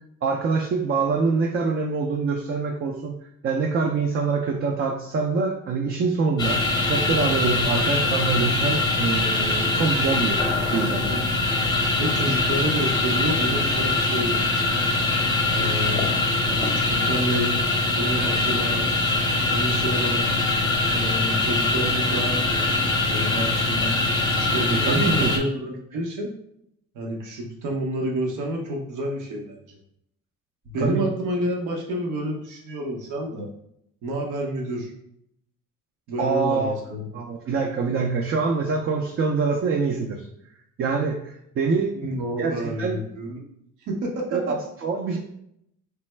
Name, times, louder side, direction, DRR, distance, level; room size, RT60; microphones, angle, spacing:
voice 1, 0.2-3.1 3.4-6.6 6.9-10.4 10.7-11.2 24.7-25.3 30.8-31.0 36.2-36.7 37.1-40.3 40.8-41.9 42.4-42.9 44.3-45.2, right 4 dB, 45° right, 1 dB, 0.4 m, -25 dB
sound 1, 6.4-25.4, left 2 dB, 15° left, 0.7 m, -23 dB
voice 2, 12.0-14.5 15.5-16.1 16.4-17.6 18.0-18.8 19.5-20.3 20.9-24.0 24.4-26.3 26.9-29.8 30.7-33.5 34.0-34.9 36.1-37.1 41.9-43.4 43.8-44.4, right 1 dB, 85° right, 0 dB, 0.8 m, -29 dB
3.2 x 2.0 x 3.2 m, 0.75 s
cardioid pair, 90°, 30 cm